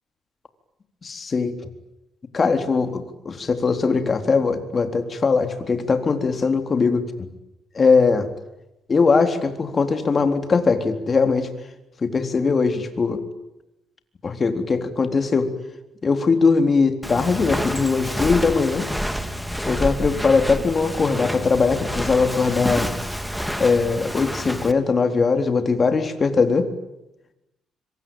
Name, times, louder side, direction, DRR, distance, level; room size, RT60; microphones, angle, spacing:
voice 1, 1.0-1.6 2.3-7.3 7.7-8.3 8.9-11.5 12.0-13.2 14.2-15.5 16.0-18.9 19.7-22.9 23.6-26.7, left 4 dB, 35° left, 7 dB, 3.9 m, -20 dB
Walk footsteps, 17.0-24.7, equal, ahead, 2.6 m, -28 dB
26.0 x 24.5 x 9.1 m, 0.91 s
cardioid pair, 90°, 0 cm